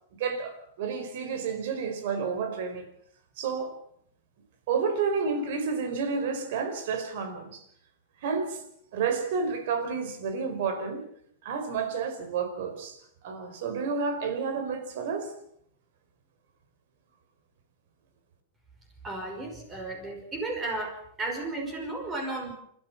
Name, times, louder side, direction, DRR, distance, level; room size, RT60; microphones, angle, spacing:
voice 1, 0.2-2.9 3.4-3.7 4.7-7.6 8.2-8.6 8.9-11.0 11.4-15.3, right 5 dB, 55° right, 9 dB, 4.5 m, -30 dB
voice 2, 19.0-22.5, right 2 dB, 15° right, 2 dB, 5.7 m, -34 dB
28.0 x 14.0 x 7.3 m, 0.69 s
supercardioid pair, 170°, 0 cm